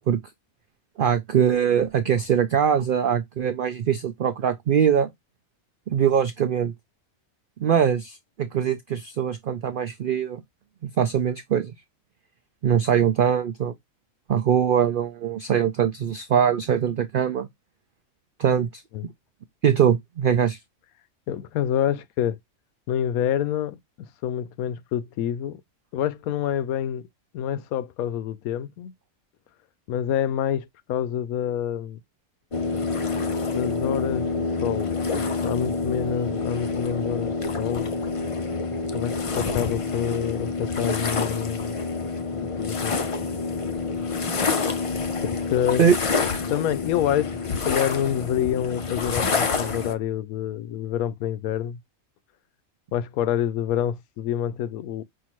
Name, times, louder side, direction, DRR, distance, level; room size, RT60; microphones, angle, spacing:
voice 1, 1.0-5.1 5.9-6.7 7.6-10.4 10.8-11.7 12.6-13.7 14.3-17.5 18.4-18.8 19.6-20.6 45.8-46.0, right 8 dB, 80° right, 0.4 m, -22 dB
voice 2, 21.3-22.4 22.9-25.6 25.9-27.1 27.3-28.9 29.9-32.0 33.5-37.9 38.9-42.1 42.6-43.0 45.2-45.8 46.4-47.4 47.6-51.8 52.9-55.0, left 10 dB, 90° left, 1.0 m, -27 dB
sound 1, 32.5-49.9, left 4 dB, 55° left, 0.3 m, -27 dB
5.6 x 2.6 x 2.9 m
omnidirectional pair, 1.5 m